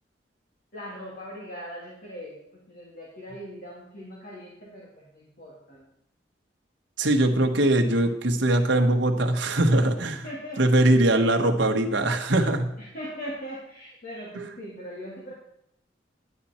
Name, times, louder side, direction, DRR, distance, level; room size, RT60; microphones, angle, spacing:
voice 1, 0.7-5.9 10.2-10.8 12.8-15.3, equal, 55° left, -5 dB, 2.5 m, -40 dB
voice 2, 7.0-10.3 10.6-12.7, right 1 dB, 80° right, 4 dB, 1.3 m, -21 dB
11.0 x 9.4 x 4.3 m, 0.73 s
head